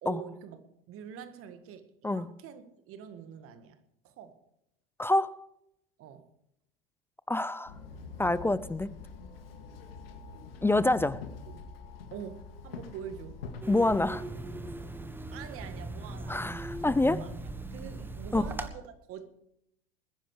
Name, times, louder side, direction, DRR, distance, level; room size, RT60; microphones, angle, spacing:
voice 1, 0.0-3.8 4.0-4.4 6.0-6.3 11.5-11.7 12.1-13.4 15.3-16.6 16.9-19.3, right 8 dB, 50° right, 1.9 m, -45 dB
voice 2, 5.0-5.4 7.3-7.7 8.2-8.9 10.6-11.2 13.7-14.3 16.3-17.2 18.3-18.4, left 2 dB, 10° left, 0.5 m, -26 dB
Walk footsteps / Chatter / Hiss, 7.7-13.6, left 4 dB, 80° left, 2.1 m, -45 dB
sound 1, 13.6-18.7, right 2 dB, 5° right, 1.4 m, -39 dB
21.0 x 10.0 x 5.0 m
hypercardioid pair, 85°, 29 cm